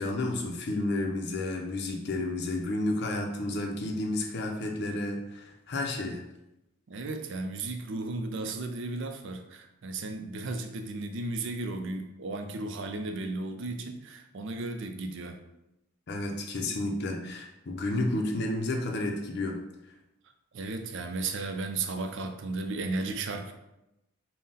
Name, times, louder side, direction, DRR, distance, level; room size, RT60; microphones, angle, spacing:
voice 1, 0.0-6.2 16.1-19.6, left 2 dB, 50° left, 2 dB, 0.6 m, -31 dB
voice 2, 6.9-15.4 17.2-17.3 20.5-23.5, right 3 dB, 60° right, 6 dB, 0.4 m, -35 dB
3.8 x 2.1 x 3.9 m, 0.91 s
head